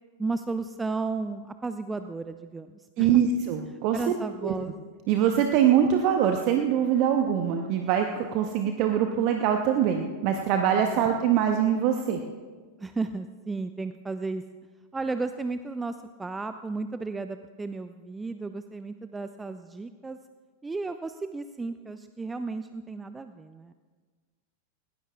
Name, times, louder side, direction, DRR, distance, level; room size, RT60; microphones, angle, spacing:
voice 1, 0.2-3.2 3.9-4.8 10.9-11.1 12.8-14.4 14.9-20.2 20.6-23.7, right 3 dB, 10° right, 10 dB, 0.4 m, -34 dB
voice 2, 3.0-4.1 4.4-4.5 5.1-12.2, right 9 dB, 45° right, 5 dB, 0.9 m, -23 dB
20.5 x 18.0 x 2.4 m, 1.5 s
figure-of-eight pair, 90°, 0 cm